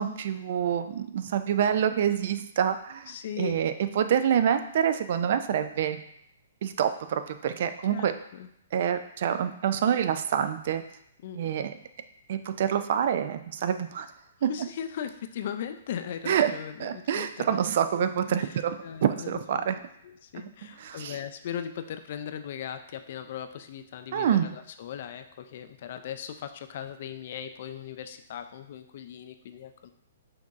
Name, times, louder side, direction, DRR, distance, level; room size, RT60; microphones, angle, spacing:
voice 1, 0.0-6.0 6.6-8.1 8.7-10.8 11.4-11.7 12.3-14.1 14.4-14.5 16.3-16.5 16.8-19.8 20.8-21.2 24.1-24.5, right 9 dB, 55° right, 10 dB, 0.3 m, -27 dB
voice 2, 3.1-3.6 7.9-8.1 8.3-8.5 11.2-11.6 14.5-17.6 18.0-19.7 20.0-29.9, left 9 dB, 55° left, 8 dB, 0.3 m, -38 dB
5.8 x 2.6 x 2.4 m, 0.73 s
hypercardioid pair, 125°, 0 cm